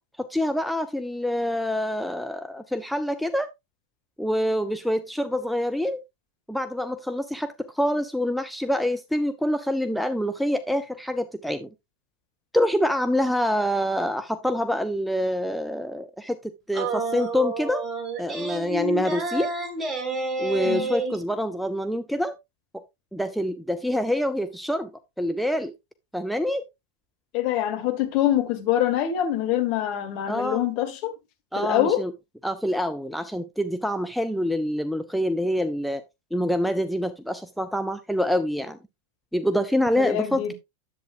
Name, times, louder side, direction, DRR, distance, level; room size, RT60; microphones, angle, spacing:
voice 1, 0.2-3.5 4.2-6.0 6.5-11.7 12.5-17.9 18.2-19.5 20.4-22.4 22.7-22.8 23.1-24.9 25.2-25.7 26.1-26.7 30.3-30.6 31.5-32.1 32.4-36.0 36.3-38.8 39.3-40.5, equal, ahead, 0.5 m, -26 dB
sound 1, 16.7-21.2, right 2 dB, 20° right, 2.1 m, -29 dB
voice 2, 27.3-31.1 31.6-32.0 40.0-40.5, left 11 dB, 45° left, 1.7 m, -24 dB
10.5 x 8.0 x 2.5 m
figure-of-eight pair, 90°, 0 cm